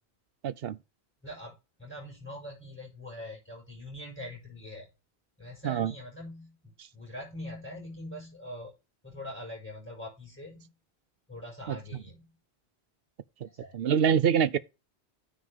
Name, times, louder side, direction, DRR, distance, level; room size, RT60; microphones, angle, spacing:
voice 1, 0.4-0.8 5.6-5.9 11.7-11.8 13.4-13.5 13.7-14.6, right 8 dB, 65° right, 0.9 m, -25 dB
voice 2, 1.2-4.9 5.4-8.7 9.0-10.7 11.3-12.2 13.4-13.7, left 1 dB, 10° left, 5.9 m, -43 dB
9.5 x 3.7 x 6.6 m
omnidirectional pair, 1.1 m